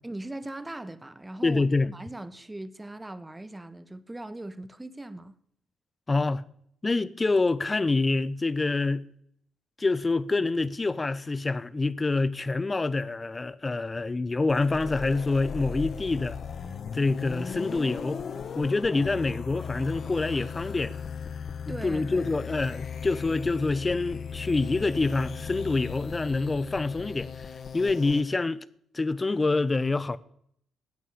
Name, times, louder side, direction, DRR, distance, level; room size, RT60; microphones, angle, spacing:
voice 1, 0.0-5.3 21.7-22.3, right 1 dB, 15° right, 1.5 m, -40 dB
voice 2, 1.4-1.9 6.1-6.4 6.8-9.0 9.8-16.4 16.9-18.2 18.5-21.0 21.7-27.5 27.7-28.6 28.9-30.2, left 3 dB, 30° left, 1.0 m, -26 dB
sound 1, 14.5-28.2, left 6 dB, 55° left, 1.3 m, -37 dB
16.0 x 9.2 x 8.6 m
supercardioid pair, 55°, 0 cm